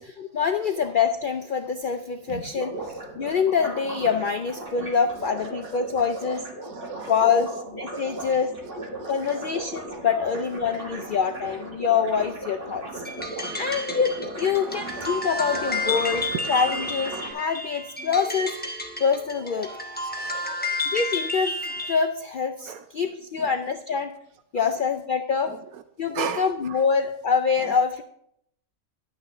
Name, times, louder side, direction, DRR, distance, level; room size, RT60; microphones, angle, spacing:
voice 1, 0.0-6.5 7.1-8.5 9.1-13.0 13.6-18.5 19.0-19.7 20.0-20.1 20.9-24.1 24.5-25.5 26.0-28.0, left 6 dB, 85° left, 7 dB, 0.4 m, -25 dB
sound 1, 0.7-1.0 2.3-17.3, right 2 dB, 40° right, 2.2 m, -37 dB
voice 2, 6.6-7.1 8.1-8.2 9.0-9.1 14.8-14.9 20.1-20.8 22.7-22.8 26.1-26.5, right 8 dB, 85° right, 10 dB, 1.0 m, -34 dB
sound 2, 13.0-22.1, left 2 dB, 10° left, 0.8 m, -31 dB
11.0 x 9.1 x 3.0 m, 0.73 s
omnidirectional pair, 1.5 m